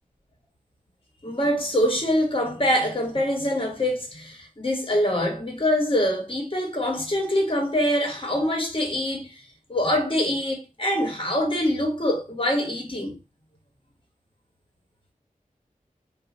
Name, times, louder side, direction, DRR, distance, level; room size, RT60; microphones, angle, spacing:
voice 1, 1.2-9.3 9.7-13.1, equal, 40° left, 1.1 m, -24 dB
2.7 x 2.2 x 4.0 m
wide cardioid pair, 60°, 14 cm